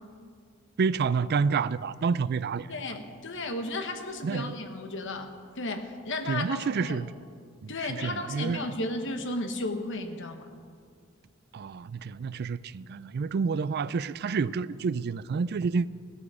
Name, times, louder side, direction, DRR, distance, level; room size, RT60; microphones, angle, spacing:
voice 1, 0.8-2.7 4.2-4.5 6.3-7.1 7.6-8.6 11.5-15.9, right 5 dB, 50° right, 0.3 m, -29 dB
voice 2, 2.7-7.0 7.7-10.5, left 2 dB, 60° left, 1.2 m, -34 dB
16.0 x 13.5 x 5.0 m
head